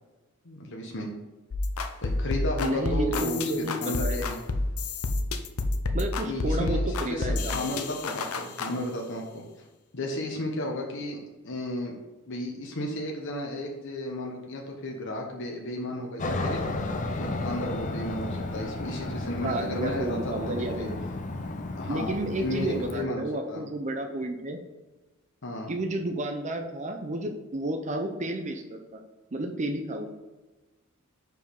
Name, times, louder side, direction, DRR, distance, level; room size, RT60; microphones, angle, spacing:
voice 1, 0.4-1.1 2.0-4.4 6.2-9.7 9.9-11.2 11.4-11.9 12.3-16.6 17.2-20.9 21.8-23.6 25.4-25.7, left 1 dB, 60° left, 0 dB, 0.9 m, -33 dB
sound 1, 1.5-8.7, left 2 dB, 90° left, 0.6 m, -29 dB
voice 2, 2.6-4.3 5.9-7.7 19.4-21.1 21.9-24.6 25.7-29.0 29.3-30.1, right 1 dB, 35° right, 4 dB, 0.6 m, -31 dB
Aircraft, 16.2-23.0, left 2 dB, 35° left, 0.6 m, -33 dB
5.0 x 4.7 x 5.2 m, 1.1 s
head